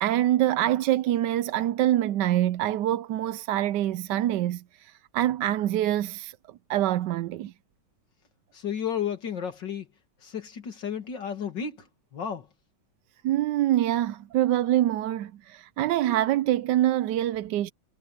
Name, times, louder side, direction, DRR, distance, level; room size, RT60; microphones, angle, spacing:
voice 1, 0.0-6.3 6.7-7.5 13.2-17.7, right 13 dB, 80° right, 1.2 m, -25 dB
voice 2, 8.5-9.9 10.2-12.5, left 8 dB, 90° left, 2.9 m, -33 dB
omnidirectional pair, 1.9 m